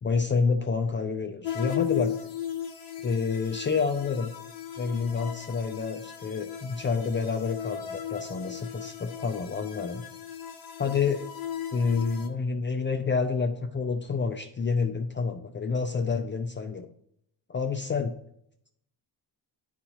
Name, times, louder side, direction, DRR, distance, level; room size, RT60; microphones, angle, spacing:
voice 1, 0.0-2.1 3.0-4.3 4.8-10.1 10.8-11.2 11.7-16.9 17.5-18.2, left 5 dB, 30° left, 5 dB, 0.4 m, -28 dB
sound 1, 1.4-12.3, left 9 dB, 55° left, 1.3 m, -36 dB
11.0 x 4.1 x 2.9 m, 0.71 s
cardioid pair, 150°, 43 cm